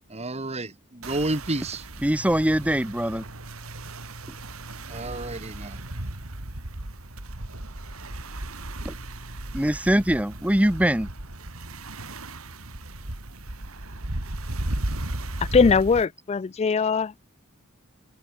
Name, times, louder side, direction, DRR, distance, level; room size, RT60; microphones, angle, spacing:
voice 1, 0.1-1.8 4.9-5.8, right 2 dB, 30° right, 2.4 m, -30 dB
sound 1, 1.0-16.1, right 1 dB, 85° right, 3.0 m, -35 dB
voice 2, 2.0-3.2 8.8-8.9 9.5-11.1, right 1 dB, 5° right, 1.1 m, -22 dB
voice 3, 15.5-17.2, left 5 dB, 30° left, 0.3 m, -21 dB
head